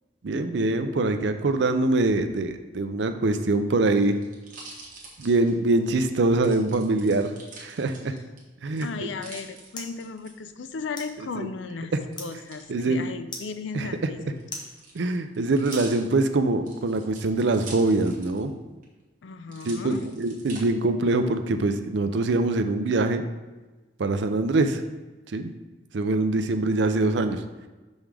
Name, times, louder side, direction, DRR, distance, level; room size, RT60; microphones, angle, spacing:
voice 1, 0.2-4.1 5.2-7.3 7.6-8.1 8.6-9.1 11.4-11.5 11.9-12.0 12.7-13.0 13.7-13.9 14.9-18.5 19.6-23.2 24.0-24.8 25.3-25.5 25.9-27.4, right 2 dB, 75° right, 8 dB, 0.5 m, -24 dB
sound 1, 3.5-5.9 6.4-8.4 8.8-10.3 12.1-12.7 13.6-18.5 18.8-18.9 19.5-20.6 21.2-21.8, right 3 dB, 45° right, 1.2 m, -45 dB
voice 2, 8.8-11.9 12.2-14.4 19.2-20.1, left 4 dB, 85° left, 10 dB, 0.5 m, -36 dB
sound 2, 8.9-16.5, left 2 dB, 25° left, 0.8 m, -45 dB
6.0 x 5.4 x 3.4 m, 1.2 s
head